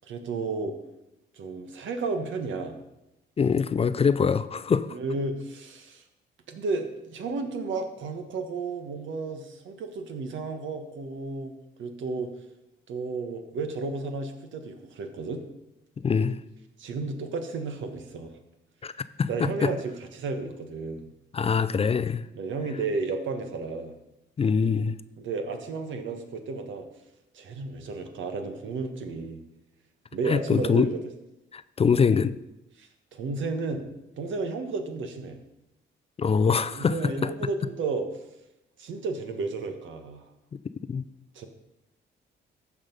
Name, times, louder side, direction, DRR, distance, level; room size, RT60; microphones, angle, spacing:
voice 1, 0.1-0.8 1.3-2.8 4.9-6.0 6.5-11.5 11.8-12.3 12.9-15.4 16.8-18.3 19.3-21.1 22.3-23.9 25.2-26.9 27.3-29.4 30.1-31.0 32.8-35.4 36.7-38.1 38.8-40.3 41.3-41.5, right 3 dB, 75° right, 6 dB, 1.5 m, -32 dB
voice 2, 3.4-5.0 16.0-16.4 18.8-18.9 19.2-19.3 19.6-19.7 21.3-22.3 24.4-25.0 30.3-30.9 31.5-32.3 36.2-37.3 40.9-41.0, left 6 dB, 30° left, 14 dB, 0.4 m, -23 dB
14.0 x 5.0 x 5.4 m, 0.91 s
cardioid pair, 90°, 20 cm